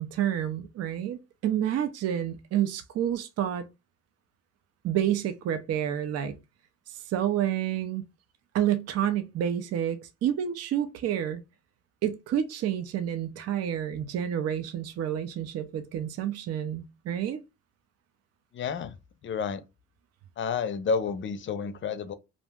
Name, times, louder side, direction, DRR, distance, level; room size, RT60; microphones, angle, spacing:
voice 1, 0.0-3.7 4.8-6.4 6.9-8.1 8.5-11.4 12.0-17.4, right 10 dB, 55° right, 0.4 m, -29 dB
voice 2, 18.5-18.9 19.2-19.6 20.4-22.1, left 5 dB, 40° left, 0.5 m, -30 dB
2.5 x 2.0 x 3.4 m
cardioid pair, 90°, 30 cm